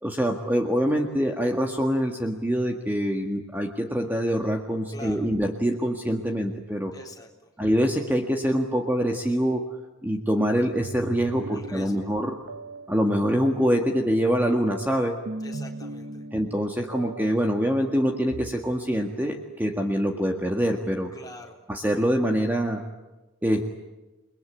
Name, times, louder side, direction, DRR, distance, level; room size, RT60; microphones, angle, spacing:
voice 1, 0.0-6.9 7.6-9.6 10.0-12.4 12.9-15.2 16.3-21.1 21.7-22.8 23.4-23.6, equal, 10° right, 2 dB, 1.7 m, -25 dB
voice 2, 4.9-5.3 6.9-7.5 11.5-12.1 15.4-16.2 21.1-21.6, left 1 dB, 20° left, 0 dB, 3.9 m, -44 dB
sound 1, 10.7-18.5, right 1 dB, 65° right, 1.3 m, -40 dB
30.0 x 21.5 x 8.7 m, 1.1 s
head